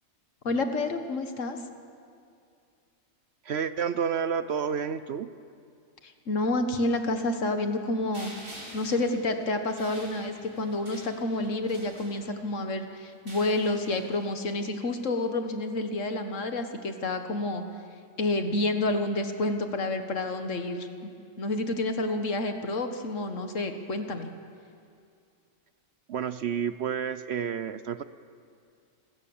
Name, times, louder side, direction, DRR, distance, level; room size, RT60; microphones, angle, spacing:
voice 1, 0.4-1.6 6.0-8.3 8.7-17.6 18.2-20.9 21.4-24.3, left 2 dB, 65° left, 7 dB, 1.8 m, -29 dB
voice 2, 3.4-5.3 26.1-28.0, right 7 dB, 60° right, 13 dB, 0.8 m, -30 dB
sound 1, 8.1-12.6 13.1-14.4, equal, 90° right, 5.9 m, -48 dB
26.5 x 16.0 x 7.2 m, 2.4 s
omnidirectional pair, 1.4 m